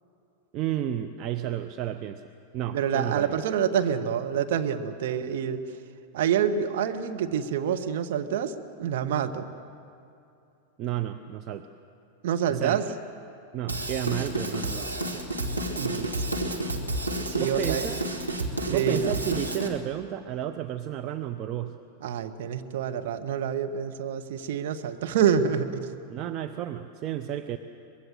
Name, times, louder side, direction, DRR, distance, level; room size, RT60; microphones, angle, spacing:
voice 1, 0.5-2.2 2.5-3.4 10.8-11.7 12.5-12.8 13.5-15.0 17.4-18.0 18.7-21.8 26.1-27.6, right 11 dB, 35° right, 7 dB, 0.8 m, -32 dB
voice 2, 2.7-5.8 6.1-9.5 12.2-12.9 15.7-16.2 17.3-17.9 18.6-19.2 22.0-26.0, right 8 dB, 55° right, 6 dB, 1.3 m, -27 dB
Drum kit / Drum, 13.7-19.7, right 1 dB, 85° right, 2.3 m, -30 dB
24.0 x 21.5 x 7.9 m, 2.7 s
figure-of-eight pair, 90°, 0 cm